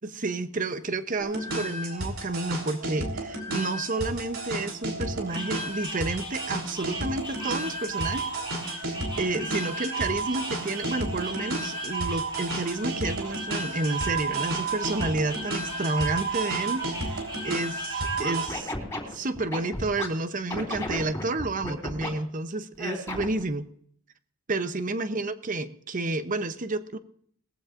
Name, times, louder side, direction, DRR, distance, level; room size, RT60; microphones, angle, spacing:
voice 1, 0.0-8.4 8.7-18.7 19.1-23.7 24.5-27.0, right 2 dB, 40° right, 10 dB, 0.8 m, -30 dB
sound 1, 1.2-18.5, right 2 dB, 75° right, 3.7 m, -32 dB
sound 2, 5.3-18.6, right 2 dB, 25° right, 4.6 m, -39 dB
Scratching (performance technique), 18.2-20.1 20.5-22.1 22.8-23.4, left 1 dB, 15° left, 3.6 m, -33 dB
20.5 x 15.0 x 2.5 m, 0.62 s
head